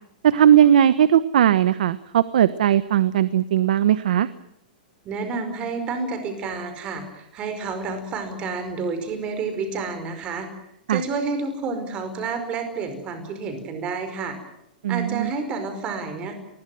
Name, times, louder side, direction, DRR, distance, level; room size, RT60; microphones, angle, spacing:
voice 1, 0.2-4.3 10.9-11.0 14.8-15.3, right 10 dB, 65° right, 14 dB, 1.1 m, -18 dB
voice 2, 5.0-10.5 10.9-14.4 14.9-16.3, right 4 dB, 20° right, 8 dB, 4.9 m, -29 dB
28.0 x 21.5 x 7.8 m, 0.79 s
supercardioid pair, 170°, 5 cm